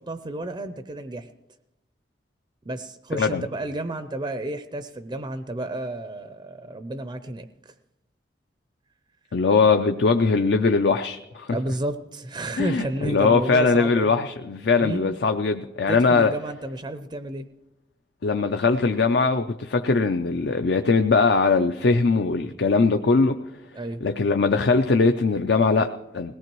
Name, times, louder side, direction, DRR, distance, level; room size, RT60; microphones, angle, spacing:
voice 1, 0.1-1.3 2.7-7.7 11.5-14.2 14.8-15.1 15.9-17.5 23.7-24.0, right 1 dB, 25° right, 9 dB, 0.5 m, -31 dB
voice 2, 9.3-11.5 12.6-16.3 18.2-23.4 24.0-26.3, left 4 dB, 60° left, 7 dB, 0.5 m, -21 dB
21.0 x 17.5 x 3.0 m, 0.99 s
head